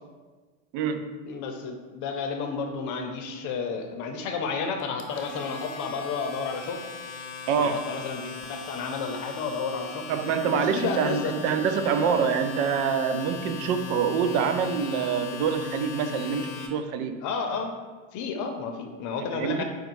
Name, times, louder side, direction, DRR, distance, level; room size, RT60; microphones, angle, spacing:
voice 1, 0.7-1.2 7.5-7.8 10.1-17.2 19.3-19.6, right 6 dB, 60° right, 9 dB, 0.5 m, -26 dB
voice 2, 1.2-6.8 7.6-10.0 10.5-11.3 17.2-17.7 18.1-19.6, left 5 dB, 50° left, 4 dB, 0.7 m, -31 dB
Domestic sounds home sounds, 4.8-16.7, left 6 dB, 90° left, 0.8 m, -38 dB
4.9 x 2.3 x 4.5 m, 1.4 s
hypercardioid pair, 95°, 40 cm